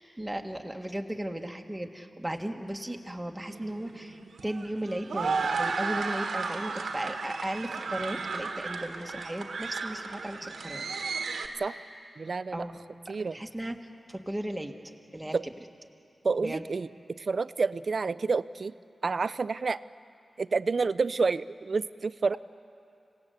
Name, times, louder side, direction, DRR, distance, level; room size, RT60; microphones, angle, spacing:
voice 1, 0.2-10.9 12.5-13.8 14.1-14.8 15.1-15.5 16.4-16.7, right 1 dB, 15° right, 3 dB, 1.6 m, -36 dB
sound 1, 3.5-11.5, right 4 dB, 90° right, 1.5 m, -34 dB
voice 2, 12.2-12.6 13.1-13.4 15.3-15.4 16.2-18.7 19.0-19.8 20.4-22.4, right 4 dB, 60° right, 16 dB, 0.5 m, -29 dB
26.0 x 17.5 x 8.0 m, 2.6 s
cardioid pair, 60°, 0 cm